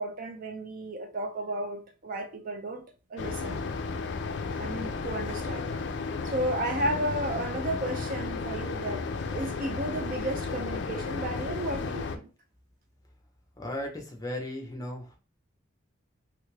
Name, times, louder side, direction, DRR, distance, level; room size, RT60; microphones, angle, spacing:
voice 1, 0.0-2.8 3.1-3.6 4.5-5.7 6.2-12.3, right 1 dB, 40° right, 0.4 m, -33 dB
sound 1, 3.2-12.2, left 4 dB, 55° left, 0.4 m, -33 dB
voice 2, 13.6-15.2, left 1 dB, 20° left, 0.7 m, -36 dB
3.3 x 2.4 x 3.2 m
head